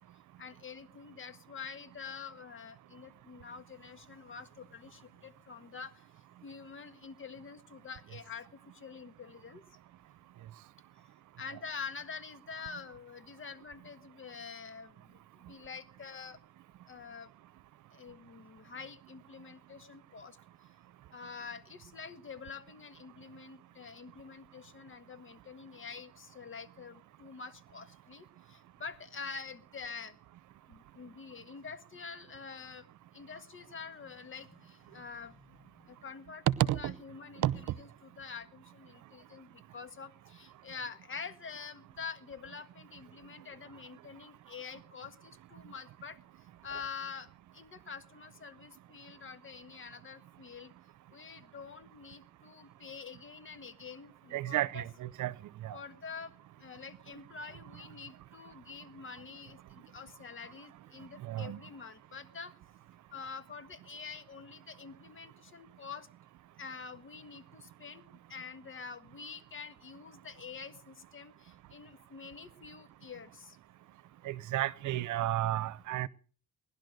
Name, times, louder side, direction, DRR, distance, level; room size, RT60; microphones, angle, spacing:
voice 1, 0.4-9.6 11.4-16.4 16.9-17.3 17.9-20.7 21.1-30.2 30.7-32.9 33.1-36.5 36.7-50.7 51.1-54.8 55.7-56.3 56.6-62.6 63.1-66.1 66.6-73.6, left 5 dB, 40° left, 1.7 m, -47 dB
voice 2, 36.5-36.9 37.4-37.5 54.3-55.3 55.6-55.7 61.3-61.6 74.3-76.1, right 14 dB, 75° right, 0.8 m, -31 dB
18.5 x 11.5 x 6.5 m
cardioid pair, 90°, 30 cm